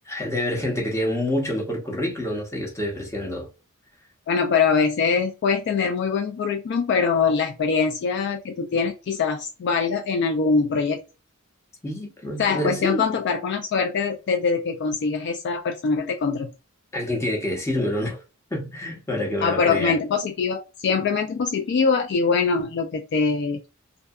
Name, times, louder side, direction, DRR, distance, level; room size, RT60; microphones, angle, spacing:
voice 1, 0.1-3.5 11.8-13.0 16.9-18.2 18.5-20.0, left 1 dB, 15° left, 0.7 m, -27 dB
voice 2, 4.3-11.0 12.4-16.5 19.4-23.6, left 5 dB, 55° left, 0.3 m, -23 dB
2.7 x 2.2 x 2.3 m
head